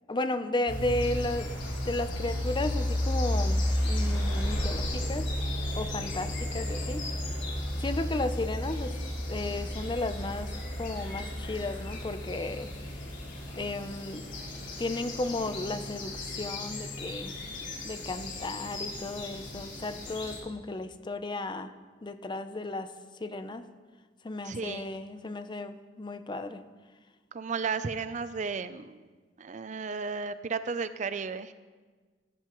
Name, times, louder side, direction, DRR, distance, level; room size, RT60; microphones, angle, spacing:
voice 1, 0.1-1.5 1.8-5.3 5.8-7.0 7.8-9.0 9.3-12.7 13.5-14.3 14.8-17.3 17.8-21.7 22.0-22.9 23.2-23.6 24.2-26.6, left 2 dB, 25° left, 10 dB, 0.6 m, -34 dB
sound 1, 0.7-20.4, left 1 dB, 80° left, 3.9 m, -33 dB
voice 2, 24.4-24.9 27.3-29.0 29.4-31.5, right 5 dB, 40° right, 13 dB, 0.5 m, -34 dB
15.5 x 14.0 x 3.1 m, 1.4 s
head